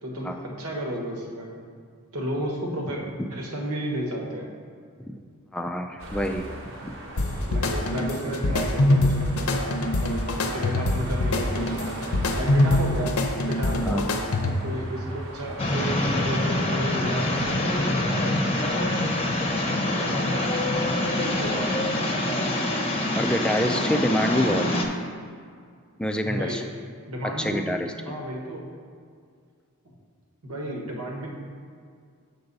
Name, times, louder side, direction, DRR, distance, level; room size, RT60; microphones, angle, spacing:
voice 1, 0.0-1.6 2.1-3.0 3.3-4.5 7.5-9.7 10.0-13.2 13.4-14.1 14.6-19.0 19.9-22.7 23.6-23.8 24.3-24.8 26.2-26.6 27.1-27.7 28.0-28.7 30.4-31.3, right 1 dB, 90° right, 0 dB, 1.4 m, -33 dB
voice 2, 5.5-6.5 6.8-6.9 13.8-14.0 23.1-24.8 26.0-26.6 27.2-27.9, equal, 5° left, 4 dB, 0.3 m, -26 dB
sound 1, 6.0-17.5, right 1 dB, 60° right, 1.0 m, -40 dB
sound 2, 7.2-14.8, left 1 dB, 85° left, 0.7 m, -24 dB
sound 3, 15.6-24.9, left 1 dB, 25° left, 0.7 m, -25 dB
6.8 x 6.6 x 4.0 m, 2.1 s
head